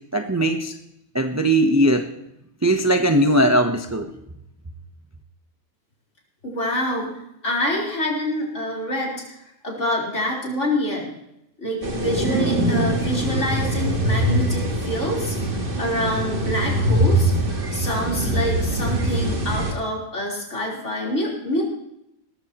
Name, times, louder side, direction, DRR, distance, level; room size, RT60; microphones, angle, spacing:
voice 1, 0.1-0.7 1.1-2.1 2.6-4.1, right 1 dB, 20° right, 5 dB, 0.5 m, -19 dB
voice 2, 6.4-7.1 7.4-9.4 9.6-11.1 11.6-15.4 15.8-17.3 17.7-21.6, equal, 55° left, -3 dB, 4.2 m, -26 dB
sound 1, 11.8-19.7, right 1 dB, 40° right, 1.6 m, -23 dB
19.0 x 14.0 x 2.9 m, 0.82 s
omnidirectional pair, 1.5 m